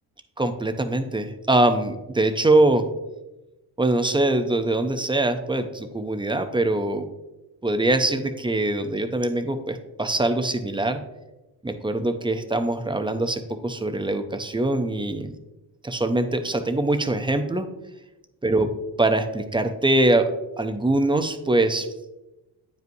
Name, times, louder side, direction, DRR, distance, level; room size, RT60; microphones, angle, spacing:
voice 1, 0.4-2.9 3.8-7.1 7.6-11.0 11.6-15.3 15.8-17.7 18.4-18.7 19.0-21.9, right 2 dB, 10° right, 8 dB, 0.5 m, -23 dB
9.1 x 5.3 x 2.7 m, 1.0 s
cardioid pair, 85°, 45 cm